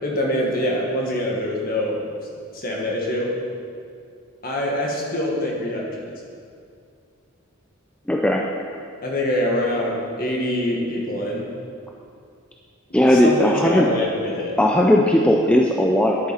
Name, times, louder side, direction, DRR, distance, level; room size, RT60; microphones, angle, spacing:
voice 1, 0.0-2.0 2.5-3.3 4.4-6.1 9.0-11.5 13.1-14.5, left 1 dB, 45° left, -2 dB, 1.7 m, -24 dB
voice 2, 8.1-8.4 12.9-13.9 14.6-16.2, left 1 dB, 5° left, 0 dB, 0.4 m, -17 dB
10.5 x 7.9 x 4.3 m, 2.3 s
head